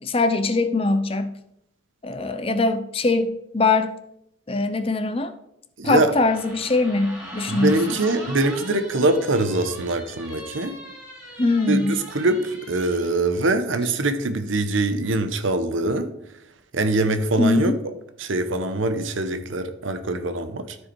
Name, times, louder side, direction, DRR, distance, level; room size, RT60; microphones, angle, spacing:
voice 1, 0.0-1.3 2.0-3.9 4.5-5.3 5.8-7.8 11.4-11.9 17.4-17.7, left 3 dB, 30° left, 0.6 m, -22 dB
voice 2, 5.8-6.1 7.5-10.8 11.7-16.1 16.7-17.7 18.2-20.8, right 2 dB, 85° right, 0.9 m, -23 dB
sound 1, 6.1-13.1, equal, 10° right, 2.6 m, -41 dB
13.5 x 4.7 x 4.6 m
head